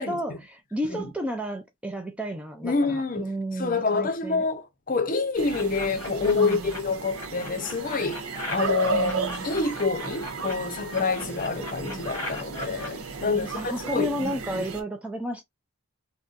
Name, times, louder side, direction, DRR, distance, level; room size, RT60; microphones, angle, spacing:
voice 1, 0.0-4.4 6.3-6.8 8.9-9.5 13.2-15.4, equal, 5° right, 0.3 m, -32 dB
voice 2, 2.6-3.3 3.6-14.3 14.6-14.7, left 4 dB, 40° left, 0.6 m, -27 dB
sound 1, 5.3-14.8, right 5 dB, 80° right, 0.8 m, -35 dB
sound 2, 5.5-6.8 7.1-10.5 10.9-12.9, left 1 dB, 15° left, 1.0 m, -37 dB
3.8 x 2.1 x 2.5 m
head